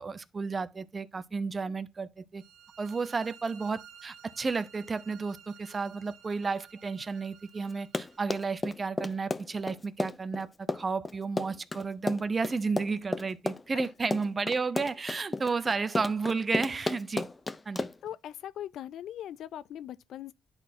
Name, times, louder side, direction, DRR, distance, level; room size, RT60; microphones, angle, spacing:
voice 1, 0.0-2.4 2.8-17.3 17.7-17.9, right 4 dB, 30° right, 0.7 m, -32 dB
sound 1, 2.4-8.2, right 8 dB, 85° right, 0.9 m, -54 dB
Run, 7.7-18.1, left 3 dB, 20° left, 0.5 m, -33 dB
voice 2, 18.0-20.3, left 11 dB, 75° left, 0.3 m, -40 dB
10.5 x 4.0 x 2.7 m
cardioid pair, 90°, 0 cm